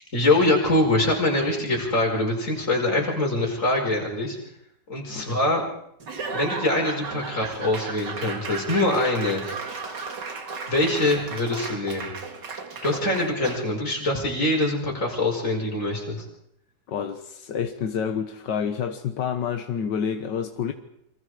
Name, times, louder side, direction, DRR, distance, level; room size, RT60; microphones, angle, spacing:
voice 1, 0.1-4.4 4.9-5.7 6.3-9.4 10.7-12.1 12.8-16.3, left 2 dB, 45° left, 5.5 m, -24 dB
Laughter / Applause / Crowd, 6.0-13.8, right 4 dB, 75° right, 2.8 m, -35 dB
voice 2, 16.9-20.7, left 7 dB, 85° left, 1.8 m, -28 dB
28.5 x 25.0 x 4.9 m
omnidirectional pair, 1.9 m